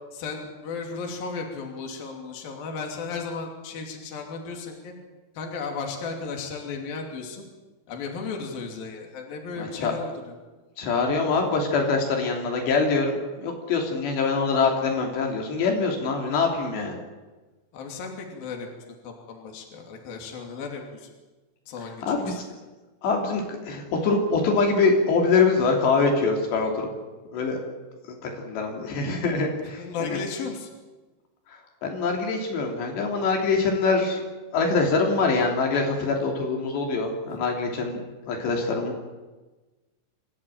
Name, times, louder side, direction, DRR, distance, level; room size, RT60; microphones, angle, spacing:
voice 1, 0.1-4.9 5.3-7.4 7.9-10.3 17.7-21.1 21.7-22.4 29.8-30.7 37.3-37.4, left 4 dB, 60° left, 2 dB, 4.5 m, -35 dB
voice 2, 9.6-9.9 10.8-17.0 22.1-22.3 23.0-26.9 27.3-27.6 28.2-30.2 31.8-34.2 34.5-39.0, left 4 dB, 80° left, 1 dB, 5.0 m, -24 dB
25.5 x 15.5 x 9.0 m, 1.2 s
omnidirectional pair, 4.9 m